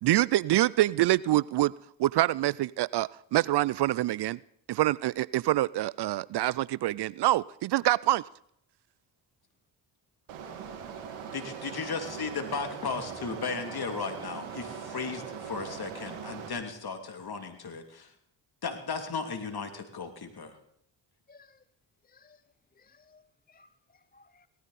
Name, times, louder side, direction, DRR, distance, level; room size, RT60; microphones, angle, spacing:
voice 1, 0.0-1.7 2.0-4.4 4.7-8.2, right 15 dB, 55° right, 23 dB, 0.5 m, -26 dB
sound 1, 10.3-16.5, right 7 dB, 85° right, 2.2 m, -41 dB
voice 2, 11.3-18.1 18.6-20.5, left 5 dB, 50° left, 5 dB, 2.9 m, -35 dB
voice 3, 21.3-21.6 22.0-22.4 22.8-24.5, left 4 dB, 20° left, 14 dB, 0.7 m, -60 dB
18.0 x 13.5 x 4.2 m, 0.71 s
supercardioid pair, 50°, 49 cm